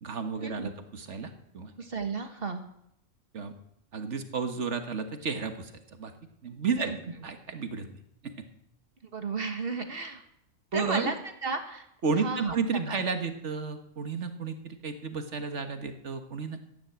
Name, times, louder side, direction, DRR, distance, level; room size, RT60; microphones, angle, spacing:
voice 1, 0.0-1.7 3.3-3.5 3.9-6.1 6.4-6.9 7.2-7.9 8.2-8.5 10.7-11.1 12.0-16.6, right 5 dB, 70° right, 7 dB, 1.7 m, -32 dB
voice 2, 1.8-2.6 6.8-7.0 9.1-10.2 10.7-11.1 11.4-11.9 12.2-13.0, right 4 dB, 50° right, 6 dB, 1.6 m, -33 dB
15.0 x 10.5 x 8.0 m, 0.77 s
omnidirectional pair, 1.3 m